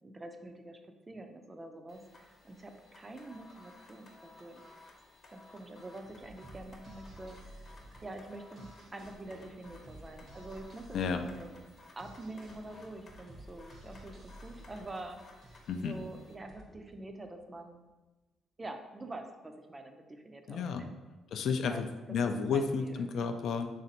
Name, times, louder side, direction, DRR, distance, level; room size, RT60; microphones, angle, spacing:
voice 1, 0.0-0.8 1.1-4.6 5.3-7.8 8.0-11.5 12.0-15.2 15.4-17.8 18.6-20.9 21.7-21.8 22.5-23.0, right 2 dB, 25° right, 5 dB, 0.4 m, -46 dB
sound 1, 1.9-16.4, left 2 dB, 45° left, 0.8 m, -58 dB
sound 2, 6.0-17.7, right 1 dB, 50° right, 0.9 m, -54 dB
voice 2, 10.9-11.2 15.7-16.0 20.5-20.9 21.3-23.7, left 5 dB, 70° left, 7 dB, 0.3 m, -32 dB
3.3 x 2.7 x 4.0 m, 1.1 s
cardioid pair, 90°, 0 cm